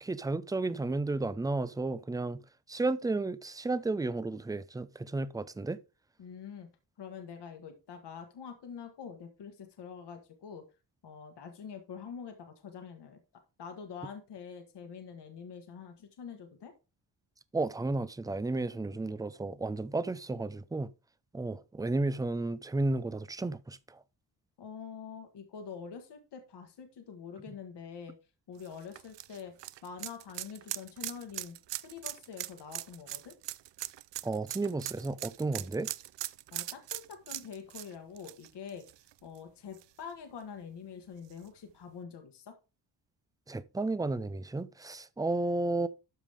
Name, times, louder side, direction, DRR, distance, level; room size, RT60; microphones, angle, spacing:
voice 1, 0.0-2.4 2.7-5.8 17.5-20.9 21.3-23.8 34.2-35.9 43.5-45.9, right 2 dB, 10° right, 0.4 m, -32 dB
voice 2, 6.2-6.7 7.0-10.6 11.0-13.2 13.6-16.7 24.6-28.1 28.5-29.5 29.8-31.5 31.8-33.3 36.5-38.9 39.2-42.5, left 6 dB, 65° left, 1.5 m, -45 dB
sound 1, 28.6-39.4 39.7-39.8 41.3-41.4, right 15 dB, 75° right, 0.6 m, -40 dB
12.5 x 5.1 x 3.5 m
cardioid pair, 110°, 43 cm